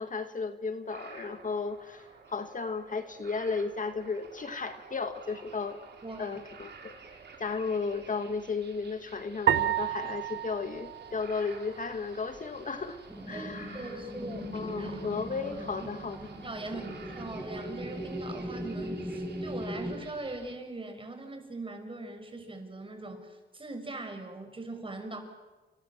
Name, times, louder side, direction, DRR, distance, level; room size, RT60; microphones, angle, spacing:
voice 1, 0.0-5.8 6.2-7.0 7.4-13.0 13.3-14.0 14.5-16.3, left 4 dB, 45° left, 8 dB, 2.0 m, -34 dB
sound 1, 0.8-20.5, right 5 dB, 65° right, 5.3 m, -51 dB
voice 2, 6.0-6.4 13.3-15.0 15.8-15.9 16.4-25.2, right 2 dB, 30° right, 5 dB, 6.1 m, -41 dB
sound 2, 9.5-11.9, right 11 dB, 85° right, 0.9 m, -31 dB
sound 3, 13.1-20.0, equal, ahead, 7.9 m, -39 dB
29.0 x 25.5 x 7.5 m, 1.2 s
cardioid pair, 90°, 19 cm